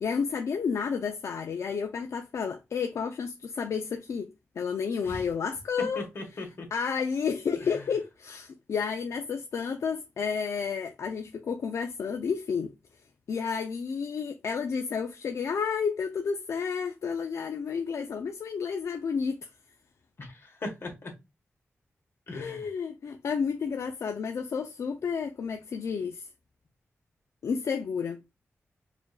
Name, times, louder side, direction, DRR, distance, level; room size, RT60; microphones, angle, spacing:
voice 1, 0.0-6.1 6.7-12.7 13.3-19.5 22.3-26.3 27.4-28.2, left 6 dB, 70° left, 0.4 m, -31 dB
voice 2, 5.9-6.7 7.6-7.8 20.2-21.1 22.3-22.6, left 2 dB, 50° left, 1.3 m, -39 dB
4.9 x 2.5 x 2.3 m
wide cardioid pair, 165°, 5 cm